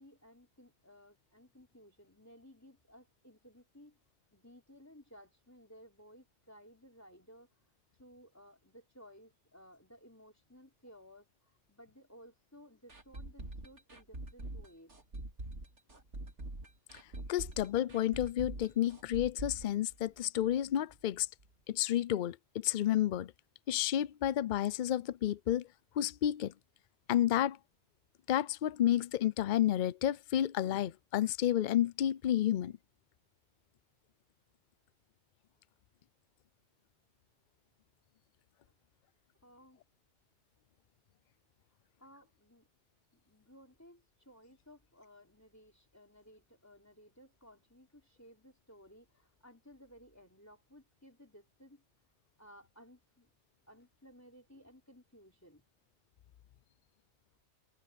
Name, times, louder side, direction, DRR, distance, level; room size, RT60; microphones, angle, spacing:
voice 1, 0.0-4.0 4.3-7.5 8.0-11.3 11.7-14.9 38.7-38.8 39.4-39.8 42.0-42.7 43.1-51.8 52.4-53.3 53.7-55.6, equal, 15° left, 3.5 m, -58 dB
sound 1, 12.9-20.6 20.9-21.0 21.4-21.5, right 2 dB, 80° right, 3.7 m, -44 dB
voice 2, 17.3-21.3 21.7-23.3 23.7-25.7 26.0-26.5 27.1-27.6 28.3-32.8, left 12 dB, 55° left, 0.6 m, -31 dB
omnidirectional pair, 1.2 m